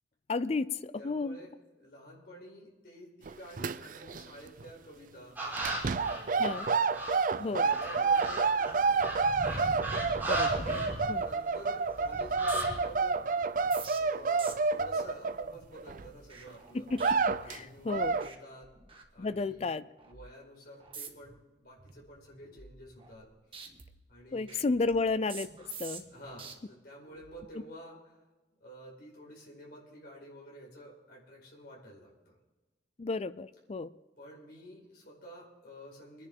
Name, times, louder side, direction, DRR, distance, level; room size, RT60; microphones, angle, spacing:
voice 1, 0.3-1.4 6.4-6.7 7.4-7.7 10.2-11.3 16.7-17.2 17.5-18.2 19.2-19.8 24.3-25.5 25.8-26.0 33.0-33.9, left 3 dB, 35° left, 15 dB, 0.4 m, -32 dB
voice 2, 1.0-1.5 1.8-6.5 7.3-9.3 11.0-13.2 14.0-16.9 17.3-18.7 19.1-19.7 20.0-23.3 24.1-24.6 26.1-28.2 28.6-32.4 34.2-36.3, equal, 60° left, -3 dB, 5.1 m, -50 dB
sound 1, 3.3-4.2 4.5-4.7 5.6-16.1 16.5-16.6 16.9-17.6 17.9-18.3, right 4 dB, 50° right, 0.4 m, -29 dB
sound 2, 5.3-7.2 7.7-11.6 11.8-12.7, right 1 dB, 10° right, 5.1 m, -37 dB
sound 3, 11.5-11.8 12.1-17.8 18.1-18.4 18.6-19.6 20.0-20.3 20.8-21.4 21.8-23.3 23.5-26.5 27.1-27.4, right 6 dB, 30° right, 1.5 m, -49 dB
25.5 x 10.5 x 3.6 m, 1.2 s
head